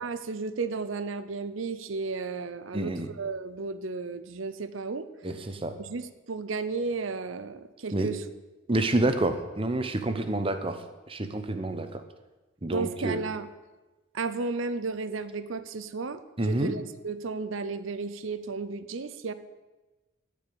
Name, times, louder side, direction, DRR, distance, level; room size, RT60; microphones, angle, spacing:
voice 1, 0.0-2.9 3.2-5.1 5.8-8.2 12.7-13.5 14.1-19.3, right 4 dB, 70° right, 12 dB, 0.7 m, -33 dB
voice 2, 2.7-3.1 5.2-5.8 7.9-8.1 8.7-12.0 12.6-13.2 16.4-16.7, right 2 dB, 25° right, 8 dB, 0.9 m, -28 dB
13.0 x 5.1 x 8.6 m, 1.2 s
head